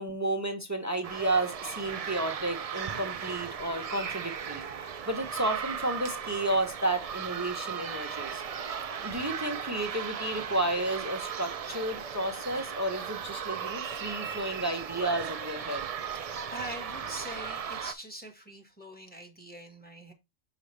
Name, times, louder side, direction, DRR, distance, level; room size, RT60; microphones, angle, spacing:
voice 1, 0.0-8.4 8.7-15.9, right 1 dB, 15° right, 0.8 m, -32 dB
sound 1, 1.0-17.9, right 7 dB, 60° right, 0.3 m, -37 dB
voice 2, 16.5-20.1, right 1 dB, 10° left, 1.5 m, -43 dB
6.3 x 5.0 x 3.2 m
omnidirectional pair, 1.2 m